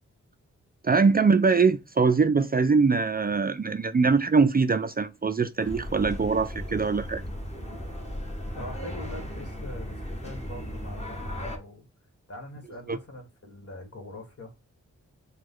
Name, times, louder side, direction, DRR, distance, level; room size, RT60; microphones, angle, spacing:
voice 1, 0.8-7.2 12.9-13.0, right 4 dB, 30° right, 0.5 m, -22 dB
sound 1, 5.6-11.6, equal, 20° left, 1.6 m, -36 dB
voice 2, 8.6-11.9 12.3-14.5, left 1 dB, 50° left, 1.8 m, -42 dB
5.0 x 2.4 x 3.8 m
cardioid pair, 50°, 30 cm